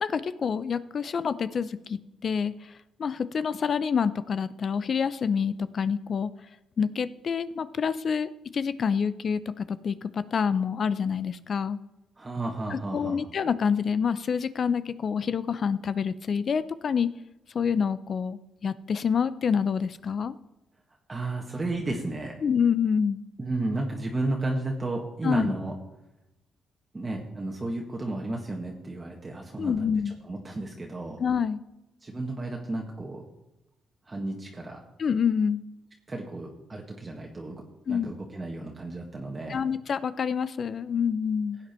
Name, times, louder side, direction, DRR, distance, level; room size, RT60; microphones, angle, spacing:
voice 1, 0.0-2.7 3.0-6.3 6.8-11.8 12.7-17.1 17.5-20.3 22.4-23.2 25.2-25.5 29.6-30.1 31.2-31.6 35.0-35.7 37.9-38.1 39.5-41.6, left 6 dB, 50° left, 15 dB, 0.6 m, -27 dB
voice 2, 12.2-13.3 21.1-22.4 23.4-25.7 26.9-29.9 30.3-31.2 32.0-33.2 34.1-34.8 36.1-37.6 37.9-39.6, right 2 dB, 25° right, 0 dB, 1.8 m, -33 dB
16.0 x 8.9 x 4.4 m, 0.95 s
cardioid pair, 90°, 0 cm